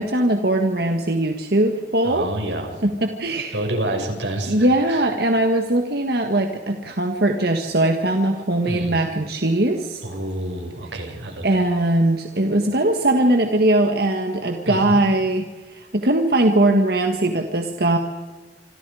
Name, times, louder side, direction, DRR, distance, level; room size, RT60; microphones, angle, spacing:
voice 1, 0.0-2.3 2.8-3.6 4.5-10.0 11.4-15.4 15.7-18.0, right 1 dB, 60° right, 4 dB, 1.8 m, -20 dB
voice 2, 2.0-2.7 3.5-5.1 8.7-9.0 10.0-11.4 14.6-15.0, right 1 dB, 90° right, 4 dB, 5.8 m, -28 dB
27.0 x 26.5 x 5.0 m, 1.2 s
head